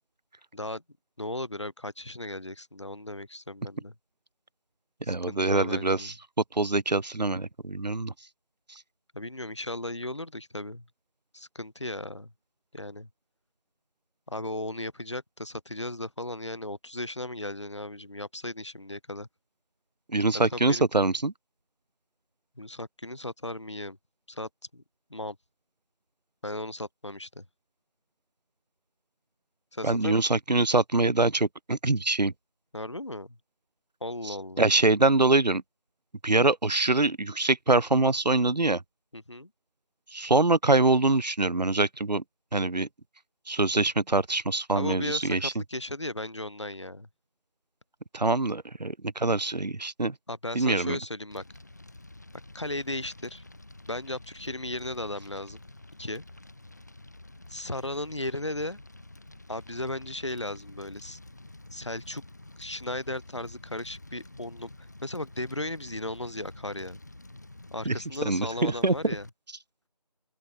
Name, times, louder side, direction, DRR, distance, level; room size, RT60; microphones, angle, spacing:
voice 1, 1.2-3.9 5.0-6.1 9.1-10.8 11.3-12.3 12.7-13.1 14.3-19.3 20.5-20.9 22.6-24.0 24.3-24.8 25.1-25.4 26.4-27.4 29.7-30.3 32.7-33.4 34.0-34.6 39.1-39.5 44.7-47.1 50.3-51.4 52.5-53.4 53.9-55.6 56.0-56.2 57.5-58.8 59.5-61.2 61.7-62.2 62.6-64.7 65.0-67.0 67.7-69.3, left 1 dB, 45° left, 3.4 m, -36 dB
voice 2, 5.1-6.1 6.5-8.1 20.1-21.3 29.8-32.3 34.2-35.6 36.2-38.8 40.1-42.2 42.5-42.9 43.5-45.5 48.1-50.1 50.5-51.0 67.9-68.0 68.2-68.9, right 2 dB, 85° right, 0.8 m, -24 dB
Fire, 51.3-69.3, left 2 dB, 25° left, 2.6 m, -49 dB
open air
figure-of-eight pair, 170°, 21 cm